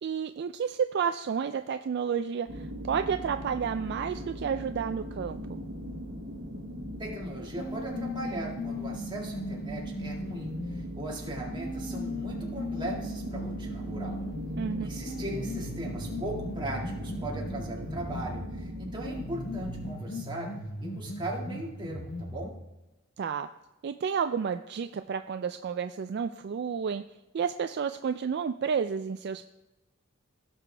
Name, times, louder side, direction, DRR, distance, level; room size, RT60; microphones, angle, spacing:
voice 1, 0.0-5.6 14.6-14.9 23.2-23.5 23.8-27.0 27.3-29.4, right 6 dB, 50° right, 9 dB, 0.3 m, -31 dB
Flying over a landscape, 2.5-19.9, equal, 70° right, 1.5 m, -39 dB
voice 2, 7.0-14.2 14.8-20.5 20.8-22.6, right 1 dB, 20° right, -2 dB, 1.9 m, -38 dB
sound 1, 7.6-10.9 11.6-18.5 19.1-22.5, left 1 dB, 50° left, 1.1 m, -38 dB
16.5 x 6.0 x 3.3 m, 1.0 s
head